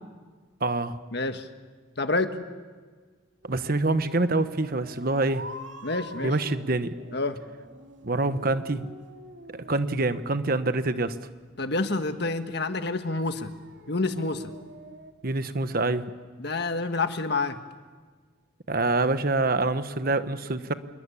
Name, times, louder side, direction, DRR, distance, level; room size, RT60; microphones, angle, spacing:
voice 1, 0.6-1.0 3.5-5.4 6.2-6.9 8.0-8.9 9.5-11.2 15.2-16.1 18.7-20.7, right 2 dB, 50° right, 11 dB, 1.2 m, -26 dB
voice 2, 1.1-1.5 2.0-2.3 5.8-6.3 7.1-7.4 11.6-13.5 13.9-14.5 16.4-17.6, left 3 dB, 60° left, 8 dB, 1.6 m, -28 dB
sound 1, 3.4-15.1, right 1 dB, 75° right, 2.5 m, -47 dB
27.0 x 22.5 x 8.6 m, 1.5 s
head